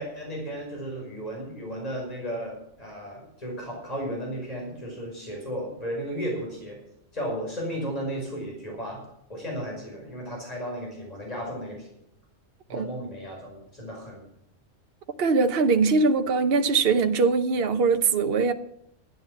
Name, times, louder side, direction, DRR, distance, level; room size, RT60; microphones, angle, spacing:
voice 1, 0.0-6.8 7.1-9.0 9.3-11.9 12.7-14.2, equal, 35° left, 5.8 m, -34 dB
voice 2, 15.2-18.5, right 4 dB, 55° right, 1.1 m, -22 dB
12.5 x 10.5 x 7.3 m
omnidirectional pair, 1.2 m